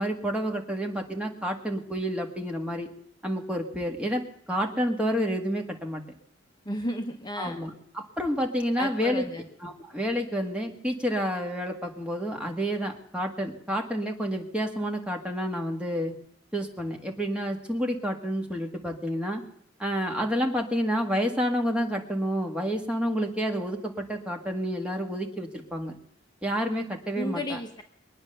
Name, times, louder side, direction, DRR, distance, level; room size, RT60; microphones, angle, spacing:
voice 1, 0.0-2.9 3.2-4.2 4.5-6.0 7.4-9.3 9.6-16.1 16.5-19.4 19.8-26.0 26.4-27.6, equal, 5° right, 2 dB, 1.7 m, -29 dB
voice 2, 6.6-7.6 8.8-9.5 27.1-27.8, left 1 dB, 25° left, 4 dB, 1.0 m, -33 dB
22.5 x 9.5 x 6.8 m, 0.71 s
head